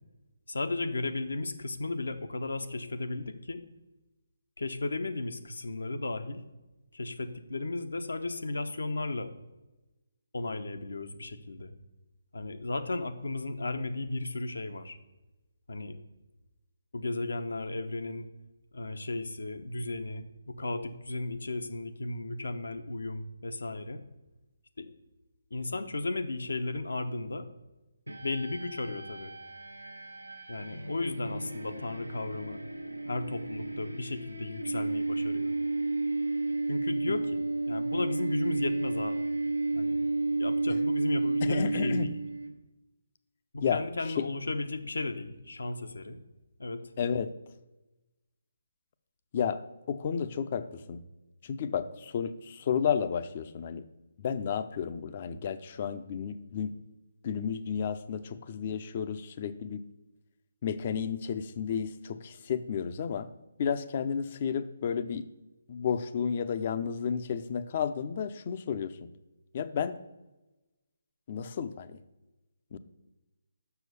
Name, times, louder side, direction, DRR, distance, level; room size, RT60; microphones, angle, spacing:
voice 1, 0.5-3.6 4.6-6.4 6.9-9.3 10.3-11.7 12.3-15.0 15.7-16.0 16.9-18.3 18.7-24.0 24.8-24.9 25.5-27.5 28.2-29.4 30.5-32.6 33.1-35.5 36.7-39.3 39.7-40.0 40.4-42.2 43.5-46.2 46.6-46.8, left 2 dB, 70° left, 8 dB, 0.9 m, -35 dB
sound 1, 28.1-42.5, right 2 dB, 90° right, 0.9 m, -32 dB
voice 2, 41.4-42.1 43.6-43.8 47.0-47.3 49.3-49.6 49.9-51.0 51.4-53.8 54.2-56.7 57.2-59.8 60.6-63.3 63.6-65.2 65.7-69.0 69.5-70.0 71.3-72.0 72.7-72.8, left 7 dB, 35° left, 12 dB, 0.6 m, -32 dB
7.0 x 6.1 x 6.8 m, 1.0 s
figure-of-eight pair, 145°, 0 cm